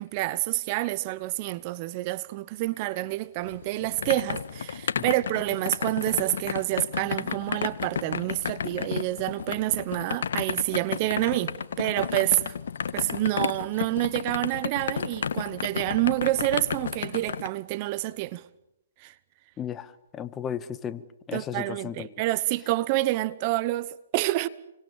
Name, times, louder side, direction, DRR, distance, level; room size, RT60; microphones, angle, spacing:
voice 1, 0.0-12.5 12.9-18.4 19.0-19.1 21.3-24.5, right 18 dB, 35° right, 1.0 m, -28 dB
sound 1, 3.5-17.5, left 7 dB, 70° left, 1.4 m, -32 dB
voice 2, 19.6-21.0 21.3-22.1, left 9 dB, 20° left, 1.4 m, -34 dB
29.0 x 25.0 x 7.3 m
hypercardioid pair, 135°, 0 cm